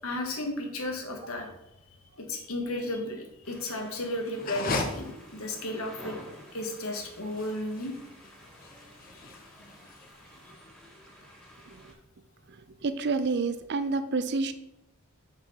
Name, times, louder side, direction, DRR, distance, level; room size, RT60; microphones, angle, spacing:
voice 1, 0.0-1.5 2.2-6.2 6.5-7.9, left 1 dB, 75° left, 2 dB, 1.4 m, -34 dB
sound 1, 3.4-11.9, equal, 5° left, 1.4 m, -51 dB
sound 2, 4.3-10.5, left 3 dB, 40° left, 0.7 m, -37 dB
voice 2, 12.8-14.5, right 3 dB, 50° right, 11 dB, 0.5 m, -29 dB
6.0 x 5.5 x 4.3 m, 0.87 s
head